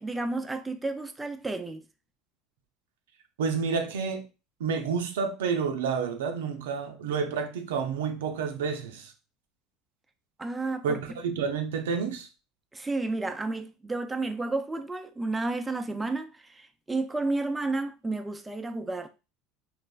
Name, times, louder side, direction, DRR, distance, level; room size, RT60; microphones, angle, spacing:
voice 1, 0.0-1.8 10.4-11.2 12.7-19.1, right 2 dB, 10° right, 0.3 m, -31 dB
voice 2, 3.4-4.2 4.6-9.1 10.8-11.0 11.2-12.3, right 5 dB, 90° right, 0.4 m, -29 dB
3.0 x 2.1 x 2.3 m
supercardioid pair, 95°, 0 cm